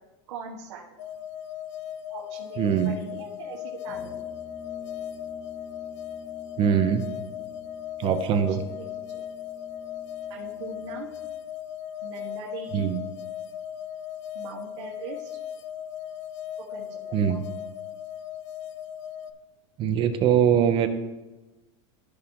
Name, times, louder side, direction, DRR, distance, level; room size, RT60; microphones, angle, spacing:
voice 1, 0.3-0.8 2.1-4.2 8.3-8.4 8.7-9.2 10.3-11.1 12.0-12.9 14.3-15.3 16.7-17.4, right 5 dB, 75° right, -6 dB, 1.9 m, -41 dB
sound 1, 1.0-19.3, left 10 dB, 70° left, 0.7 m, -37 dB
voice 2, 2.6-3.0 6.6-7.0 8.0-8.6 12.7-13.0 17.1-17.4 19.8-20.9, right 8 dB, 35° right, 9 dB, 0.7 m, -22 dB
Brass instrument, 3.8-11.3, left 4 dB, 20° left, 1.9 m, -48 dB
15.0 x 6.1 x 3.0 m, 1.1 s
supercardioid pair, 135°, 16 cm